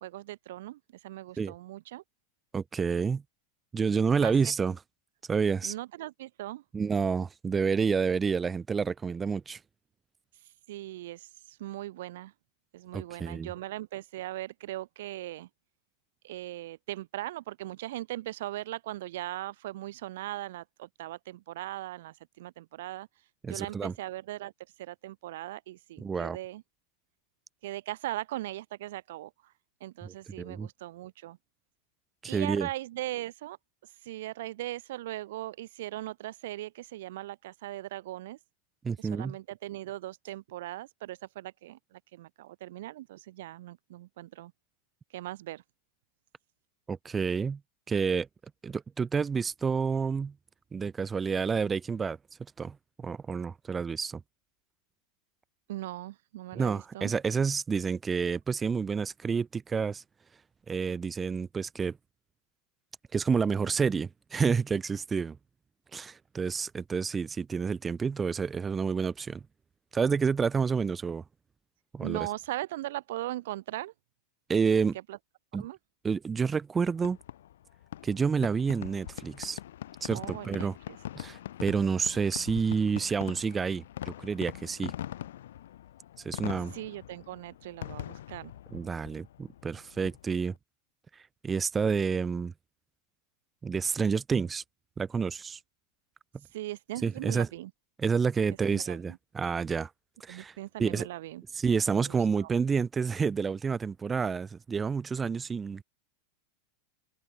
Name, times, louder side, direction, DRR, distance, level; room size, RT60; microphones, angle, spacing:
voice 1, 0.0-2.0 4.2-4.3 5.6-6.6 10.3-12.3 12.7-15.5 16.2-26.6 27.6-29.5 29.8-31.4 32.3-33.6 33.8-38.4 39.0-44.5 45.1-45.6 55.7-57.1 72.0-73.9 75.1-75.2 75.5-75.8 80.1-81.0 86.7-88.5 96.4-97.7 98.7-99.0 100.3-101.4 101.9-102.5, right 15 dB, 70° right, 1.5 m, -39 dB
voice 2, 2.5-3.2 3.7-4.8 5.3-5.7 6.7-9.6 12.9-13.5 23.4-23.9 26.0-26.4 30.0-30.7 32.2-32.7 38.8-39.3 46.9-47.6 47.9-48.3 48.6-50.3 50.7-52.2 52.6-54.2 56.5-60.0 60.7-62.0 63.1-65.4 65.9-69.4 69.9-71.2 71.9-72.3 74.5-75.0 75.5-75.6 76.0-77.2 78.0-79.6 80.0-80.7 81.2-84.9 86.2-86.7 88.7-90.5 91.1-92.5 93.6-94.6 95.0-95.6 97.0-97.5 98.0-99.9 100.2-100.5 100.8-101.1 101.5-105.8, right 5 dB, 15° right, 0.4 m, -29 dB
Fireworks, 77.0-90.5, left 12 dB, 85° left, 4.3 m, -42 dB
supercardioid pair, 145°, 0 cm